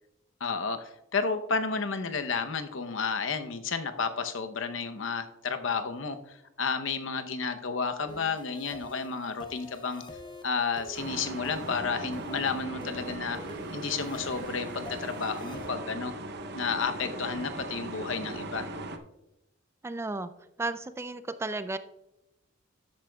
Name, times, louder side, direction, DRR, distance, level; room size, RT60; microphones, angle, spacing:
voice 1, 0.4-10.0 10.4-13.4 13.7-16.1 16.5-18.7, left 5 dB, 75° left, 8 dB, 0.8 m, -32 dB
sound 1, 8.1-15.7, left 1 dB, 25° left, 0.7 m, -47 dB
sound 2, 10.9-19.0, right 2 dB, 60° right, 0.7 m, -38 dB
voice 2, 19.8-20.3 20.6-21.8, right 2 dB, 15° right, 12 dB, 0.3 m, -33 dB
12.5 x 8.6 x 2.3 m, 0.89 s
head